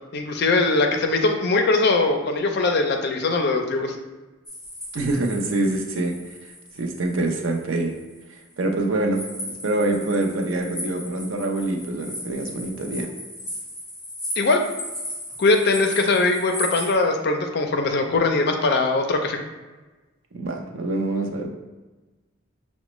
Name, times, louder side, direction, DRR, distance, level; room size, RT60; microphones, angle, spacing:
voice 1, 0.1-4.0 14.4-14.6 15.4-19.4, left 3 dB, 55° left, 4 dB, 0.5 m, -21 dB
sound 1, 4.5-8.2 9.1-16.9, equal, 20° left, 1.4 m, -36 dB
voice 2, 4.9-6.1 6.8-7.9 8.6-9.2 9.6-13.1 20.3-21.5, right 2 dB, 70° right, 2 dB, 0.5 m, -25 dB
5.9 x 2.1 x 3.0 m, 1.2 s
head